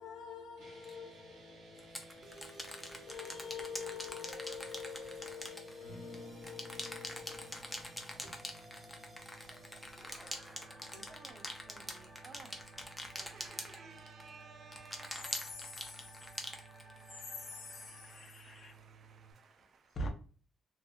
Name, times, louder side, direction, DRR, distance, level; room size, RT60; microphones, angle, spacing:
voice 1, 0.0-2.1 3.1-9.9 10.9-11.1, left 6 dB, 80° left, 0.7 m, -48 dB
sound 1, 0.6-19.3, right 2 dB, 85° right, 1.2 m, -57 dB
sound 2, 0.8-0.9 1.8-6.2 6.4-14.3 14.7-17.2, left 1 dB, 5° left, 0.6 m, -44 dB
sound 3, 2.2-18.2, right 1 dB, 30° right, 1.0 m, -57 dB
voice 2, 10.9-12.6 13.2-15.4 16.3-20.0, right 5 dB, 55° right, 0.4 m, -58 dB
voice 3, 15.4-16.0 17.4-18.7 20.0-20.1, equal, 50° left, 0.7 m, -43 dB
2.7 x 2.5 x 2.4 m
cardioid pair, 90°, 0 cm